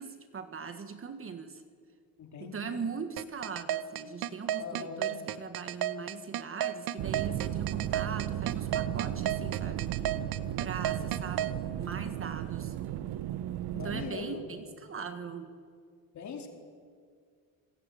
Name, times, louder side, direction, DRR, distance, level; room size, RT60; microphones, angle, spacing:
voice 1, 0.0-1.6 2.4-10.0 10.6-11.5 11.8-12.7 13.7-15.5, right 6 dB, 35° right, 9 dB, 1.6 m, -40 dB
voice 2, 2.2-2.8 4.6-5.2 13.7-14.4 16.1-16.5, left 5 dB, 45° left, 3 dB, 4.0 m, -41 dB
sound 1, 3.2-11.5, right 12 dB, 65° right, 1.1 m, -32 dB
sound 2, 7.0-14.1, right 12 dB, 85° right, 1.1 m, -35 dB
26.5 x 21.5 x 9.1 m, 2.1 s
cardioid pair, 145°, 38 cm